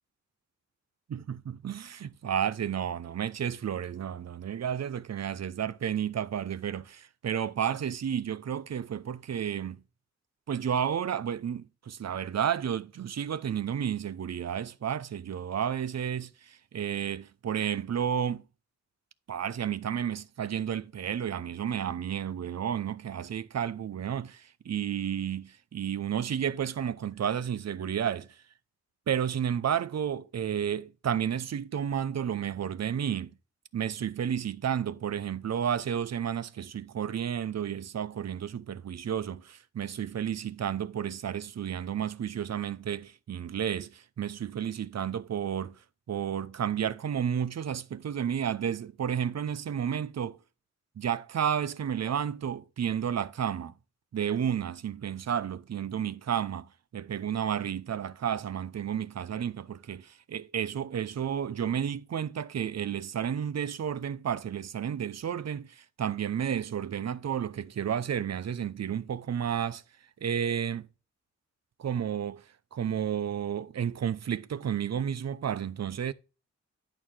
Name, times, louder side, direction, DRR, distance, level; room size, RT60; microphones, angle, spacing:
voice 1, 1.1-9.8 10.5-18.4 19.3-28.3 29.1-33.3 33.7-45.8 46.1-50.4 51.0-53.7 54.1-69.8 70.2-70.9 71.8-72.4 72.7-76.1, right 8 dB, 60° right, 0.6 m, -32 dB
10.5 x 4.7 x 3.6 m
wide cardioid pair, 100°, 30 cm